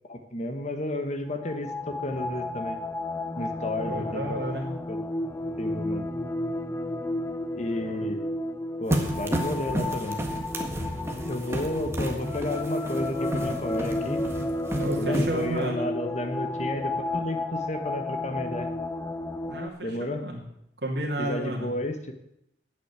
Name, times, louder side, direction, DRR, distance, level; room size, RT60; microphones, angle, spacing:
voice 1, 0.1-2.8 3.4-4.4 4.9-5.0 5.6-6.1 7.5-8.3 8.8-10.2 11.2-14.2 15.0-18.7 19.8-20.2 21.2-22.1, left 1 dB, 40° left, 7 dB, 1.2 m, -32 dB
sound 1, 1.3-19.7, left 1 dB, 15° left, 0.5 m, -32 dB
voice 2, 3.8-4.7 7.7-8.1 14.8-15.9 19.5-20.4 20.8-21.7, right 1 dB, 70° right, -3 dB, 2.5 m, -32 dB
sound 2, 8.9-15.7, right 1 dB, 15° right, 1.6 m, -31 dB
9.5 x 8.2 x 8.2 m, 0.77 s
head